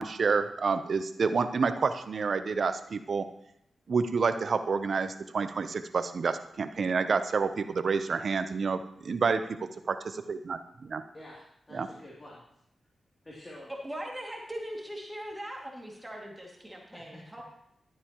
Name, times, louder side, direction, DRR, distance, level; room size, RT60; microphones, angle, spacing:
voice 1, 0.0-3.3 3.9-9.4 9.9-11.0 11.7-11.9, right 5 dB, 65° right, 10 dB, 0.7 m, -29 dB
voice 2, 11.1-12.4 13.2-13.7 16.9-17.4, left 1 dB, 30° left, -6 dB, 2.8 m, -48 dB
voice 3, 13.8-17.4, equal, 15° right, -1 dB, 2.3 m, -40 dB
12.5 x 9.3 x 3.0 m, 0.75 s
cardioid pair, 50°, 0 cm